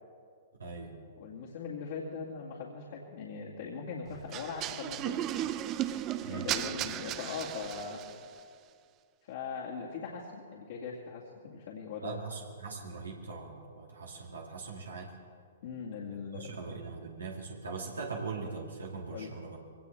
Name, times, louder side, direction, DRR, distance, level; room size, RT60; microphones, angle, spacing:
voice 1, 0.6-0.9 4.1-4.2 6.2-6.5 12.0-15.1 16.3-19.6, right 4 dB, 85° right, -1 dB, 2.3 m, -41 dB
voice 2, 1.2-5.2 6.3-8.0 9.3-12.2 15.6-16.5 19.1-19.3, left 5 dB, 55° left, -5 dB, 2.3 m, -40 dB
sound 1, 4.3-8.2, right 12 dB, 30° right, 0.6 m, -35 dB
22.5 x 18.0 x 3.5 m, 2.2 s
hypercardioid pair, 120°, 0 cm